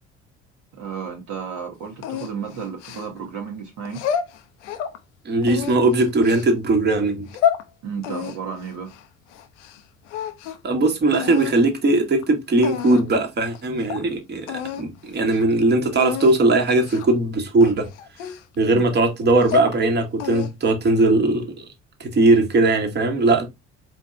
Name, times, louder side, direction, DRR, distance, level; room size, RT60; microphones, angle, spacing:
voice 1, 0.7-4.0 7.8-8.9, right 6 dB, 50° right, 0.9 m, -32 dB
sound 1, 2.0-3.4 3.9-5.0 5.4-6.5 7.1-7.6 8.0-9.8 10.1-10.7 11.1-11.6 12.2-12.3 12.6-13.2 13.5-13.6 13.9-14.0 14.5-14.9 15.2-15.4 16.0-16.4 16.8-17.2 17.6-18.8 19.3-19.8 20.2-20.7, left 8 dB, 65° left, 0.6 m, -28 dB
voice 2, 5.2-7.3 10.6-17.9 18.6-21.6 22.0-23.5, right 2 dB, 25° right, 1.1 m, -19 dB
4.4 x 2.9 x 2.4 m
figure-of-eight pair, 55°, 38 cm